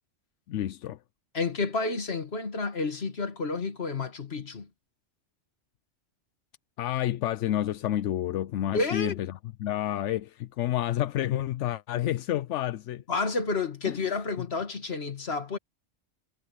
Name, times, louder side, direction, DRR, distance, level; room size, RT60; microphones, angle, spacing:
voice 1, 0.5-1.0 6.8-9.3 9.6-13.0 13.9-14.0, left 12 dB, 85° left, 0.9 m, -29 dB
voice 2, 1.3-4.7 8.7-9.2 13.1-15.6, left 3 dB, 60° left, 2.0 m, -30 dB
omnidirectional pair, 1.2 m